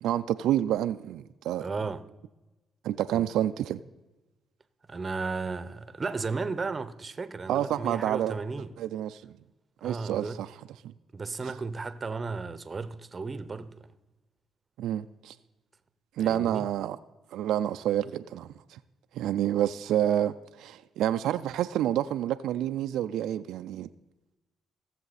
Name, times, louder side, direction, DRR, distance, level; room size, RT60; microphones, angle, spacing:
voice 1, 0.0-1.7 2.8-3.8 7.5-8.4 8.8-9.3 9.8-10.5 10.8-10.9 14.8-15.4 16.2-17.0 17.3-18.8 19.1-23.9, right 11 dB, 85° right, 0.3 m, -28 dB
voice 2, 1.6-2.1 3.1-3.2 4.9-8.7 9.8-10.4 11.1-13.9 16.2-16.6, right 4 dB, 30° right, 0.7 m, -34 dB
16.5 x 7.1 x 4.1 m
cardioid pair, 90°, 0 cm